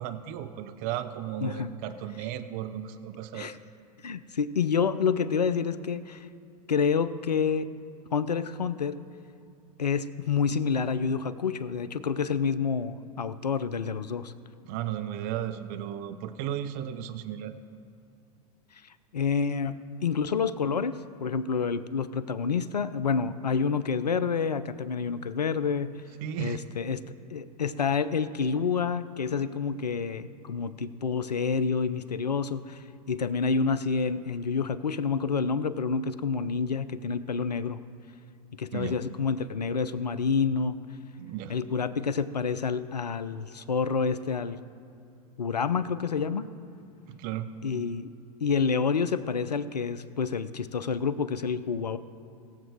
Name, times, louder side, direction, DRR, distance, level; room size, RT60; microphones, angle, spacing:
voice 1, 0.0-3.6 14.6-17.6 26.2-26.6 38.7-39.0 41.2-41.5 47.1-47.5, right 10 dB, 45° right, 10 dB, 0.7 m, -35 dB
voice 2, 4.0-6.3 6.7-7.7 8.1-9.0 9.8-14.3 18.8-25.9 26.4-27.0 27.3-37.8 38.5-40.8 41.5-44.6 45.4-46.5 47.6-48.1 48.4-52.0, left 5 dB, 85° left, 15 dB, 0.6 m, -28 dB
21.0 x 7.3 x 3.5 m, 2.6 s
figure-of-eight pair, 90°, 20 cm